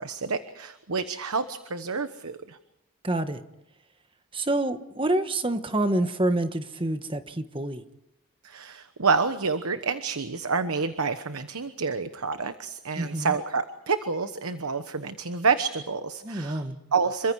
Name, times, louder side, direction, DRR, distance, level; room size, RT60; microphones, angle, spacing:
voice 1, 0.0-2.6 8.4-16.6 16.9-17.3, right 4 dB, 80° right, 1.1 m, -28 dB
voice 2, 3.0-3.4 4.3-7.8 13.0-13.3 16.2-16.8, right 1 dB, 25° right, 1.3 m, -27 dB
28.0 x 24.0 x 4.8 m
head